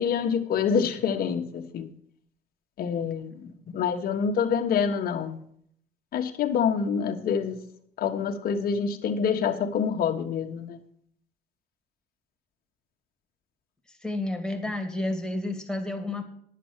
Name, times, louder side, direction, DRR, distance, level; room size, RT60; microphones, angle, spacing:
voice 1, 0.0-1.9 2.8-3.3 3.7-5.4 6.1-7.6 8.0-10.8, left 7 dB, 60° left, 4 dB, 1.4 m, -26 dB
voice 2, 14.0-16.3, left 2 dB, 5° left, 3 dB, 2.1 m, -30 dB
10.5 x 7.6 x 7.3 m, 0.65 s
cardioid pair, 110°, 17 cm